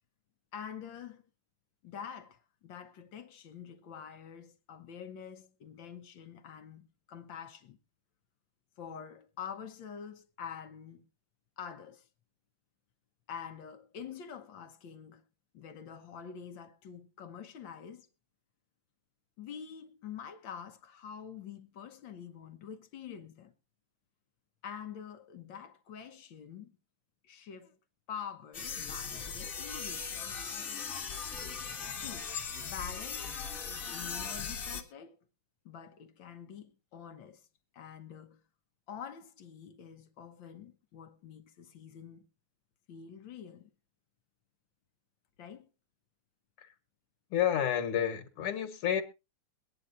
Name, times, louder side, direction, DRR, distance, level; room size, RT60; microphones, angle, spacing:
voice 1, 0.5-1.2 1.8-7.8 8.8-11.1 11.6-12.1 13.3-15.2 15.5-18.1 19.4-23.5 24.6-26.8 27.2-27.8 28.1-30.3 32.0-32.4 32.6-33.4 33.9-35.2 35.6-37.5 37.7-38.4 38.9-42.3 42.9-43.7 45.4-45.7, left 7 dB, 65° left, 1.5 m, -46 dB
sound 1, 28.5-34.8, left 6 dB, 40° left, 1.8 m, -39 dB
voice 2, 47.3-49.0, left 9 dB, 90° left, 2.2 m, -30 dB
23.0 x 9.9 x 2.5 m
omnidirectional pair, 2.4 m